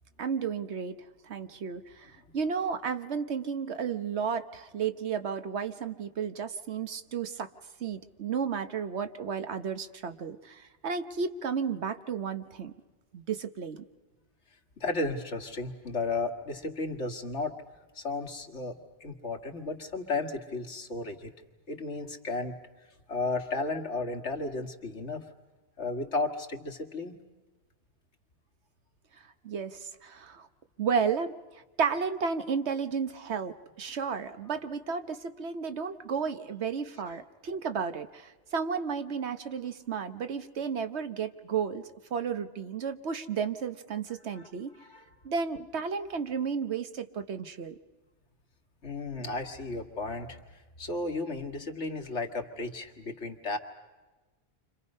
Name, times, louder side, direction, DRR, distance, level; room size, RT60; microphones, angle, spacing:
voice 1, 0.2-1.0 1.2-7.5 7.8-12.7 13.1-13.8 29.4-30.5 30.8-31.3 31.8-44.7 45.2-47.8, right 6 dB, 75° right, 9 dB, 1.3 m, -33 dB
voice 2, 14.8-17.5 18.0-21.3 21.7-22.6 23.1-25.2 25.8-27.1 44.3-44.4 44.8-45.1 48.8-50.4 50.8-53.6, left 3 dB, 90° left, 4 dB, 2.1 m, -34 dB
30.0 x 26.0 x 5.5 m, 1.2 s
omnidirectional pair, 1.1 m